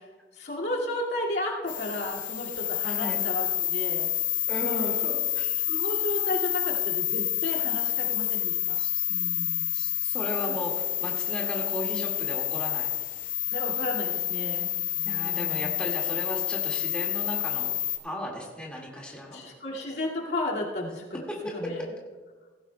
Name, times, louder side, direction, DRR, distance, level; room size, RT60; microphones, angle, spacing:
voice 1, 0.4-4.1 4.6-5.1 5.7-8.8 9.1-9.7 13.5-14.7 15.0-15.7 19.3-21.0 21.5-21.8, left 1 dB, 70° left, -4 dB, 2.2 m, -33 dB
sound 1, 1.7-18.0, left 12 dB, 45° left, 0.9 m, -29 dB
voice 2, 2.8-3.3 4.5-5.8 8.8-9.1 9.7-12.9 14.9-17.8 18.0-19.4 21.3-21.9, left 1 dB, 5° left, -3 dB, 1.9 m, -36 dB
17.5 x 15.0 x 2.2 m, 1.4 s
head